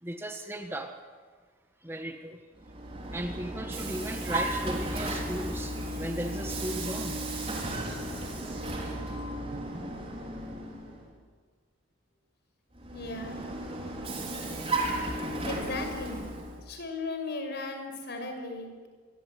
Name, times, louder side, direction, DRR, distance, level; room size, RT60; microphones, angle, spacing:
voice 1, 0.0-1.0 1.8-2.4 3.1-7.2 8.7-8.9, right 1 dB, 10° right, 5 dB, 1.5 m, -36 dB
Vehicle, 2.6-11.1 12.7-16.6, right 1 dB, 30° right, 5.2 m, -34 dB
voice 2, 12.9-13.5 15.0-16.2 16.6-18.9, left 3 dB, 55° left, 4 dB, 6.1 m, -37 dB
26.5 x 23.5 x 9.5 m, 1.5 s
head